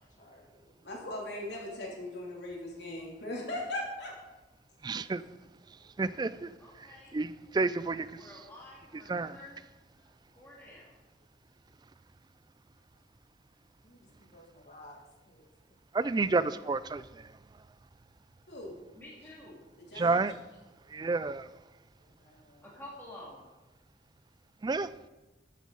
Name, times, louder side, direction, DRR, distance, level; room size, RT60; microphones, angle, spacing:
voice 1, 0.8-4.1 18.5-18.7 19.8-20.3, left 1 dB, 70° left, -2 dB, 3.0 m, -39 dB
voice 2, 4.8-5.2 6.0-6.5 7.1-8.1 9.1-9.4 15.9-17.0 20.0-20.3 20.9-21.4 24.6-24.9, right 3 dB, 25° right, 16 dB, 0.3 m, -29 dB
voice 3, 6.6-7.1 8.1-9.6 10.4-10.9 18.9-19.6 22.6-23.4, left 1 dB, 10° left, -6 dB, 2.4 m, -49 dB
voice 4, 10.3-10.6 13.8-15.0 15.3-15.5 22.0-22.7, left 1 dB, 45° left, 0 dB, 2.2 m, -56 dB
14.0 x 8.4 x 4.0 m, 1.1 s
head